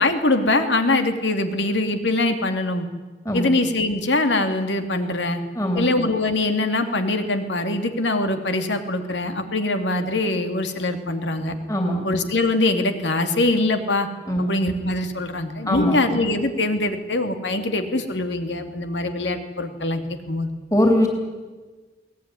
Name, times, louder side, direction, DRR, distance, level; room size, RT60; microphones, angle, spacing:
voice 1, 0.0-2.9 3.3-5.4 5.8-11.6 12.0-14.1 14.4-20.5, left 2 dB, 90° left, 7 dB, 2.6 m, -23 dB
voice 2, 5.5-5.9 11.7-12.0 14.3-14.4 15.7-16.0 20.7-21.1, left 1 dB, 20° left, 2 dB, 3.3 m, -20 dB
23.0 x 18.0 x 9.9 m, 1.3 s
head